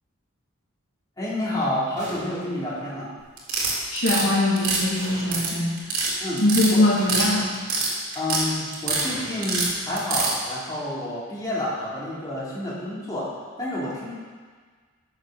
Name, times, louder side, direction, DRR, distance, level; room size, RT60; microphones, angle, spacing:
voice 1, 1.2-3.1 6.2-6.4 6.7-6.8 8.1-13.3 13.6-14.1, left 1 dB, 15° left, -8 dB, 2.9 m, -29 dB
sound 1, 2.0-2.7 5.0-5.8 7.0-7.7 9.0-10.2, right 1 dB, 35° right, 3.0 m, -42 dB
sound 2, 3.4-4.2 4.6-5.5 5.8-6.1 6.4-7.3 7.5-8.4 8.7-9.1 9.4-10.3, right 4 dB, 90° right, 2.7 m, -24 dB
voice 2, 3.9-5.7 6.4-7.5, left 1 dB, 65° left, -7 dB, 2.5 m, -21 dB
13.0 x 6.6 x 5.0 m, 1.5 s
head